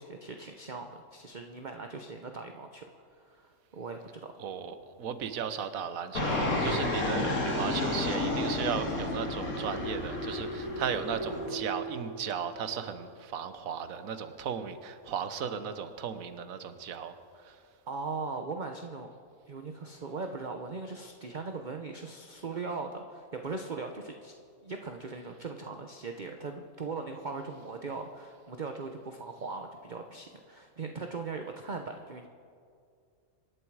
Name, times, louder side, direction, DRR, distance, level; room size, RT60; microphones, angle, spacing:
voice 1, 0.0-4.3 17.9-19.1 19.5-24.3 24.6-32.3, right 4 dB, 40° right, 4 dB, 0.9 m, -39 dB
voice 2, 4.4-17.1 17.4-17.5, right 7 dB, 75° right, 10 dB, 1.4 m, -36 dB
Fixed-wing aircraft airplane, 6.1-11.5, left 2 dB, 85° left, 2.6 m, -31 dB
sound 1, 9.4-13.2, right 1 dB, 20° right, 3.0 m, -41 dB
26.5 x 11.0 x 4.8 m, 2.3 s
omnidirectional pair, 1.5 m